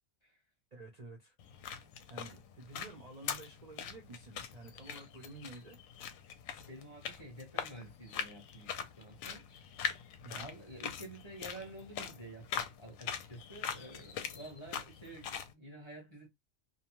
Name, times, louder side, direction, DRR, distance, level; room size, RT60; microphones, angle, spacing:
voice 1, 0.7-1.3 2.1-5.8 10.2-10.5, right 2 dB, 40° right, 0.6 m, -50 dB
sound 1, 1.4-15.5, left 8 dB, 75° left, 0.9 m, -43 dB
voice 2, 6.7-9.5 10.3-16.3, right 1 dB, 25° left, 0.8 m, -50 dB
2.7 x 2.1 x 2.9 m
omnidirectional pair, 1.5 m